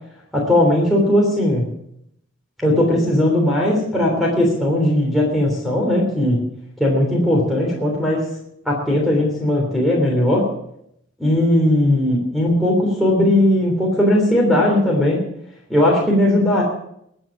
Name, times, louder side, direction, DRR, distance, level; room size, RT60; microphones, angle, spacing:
voice 1, 0.3-1.7 2.6-6.4 6.8-8.2 8.6-10.5 11.2-15.2 15.7-16.6, left 1 dB, ahead, -5 dB, 3.3 m, -18 dB
22.5 x 8.0 x 6.0 m, 0.74 s
head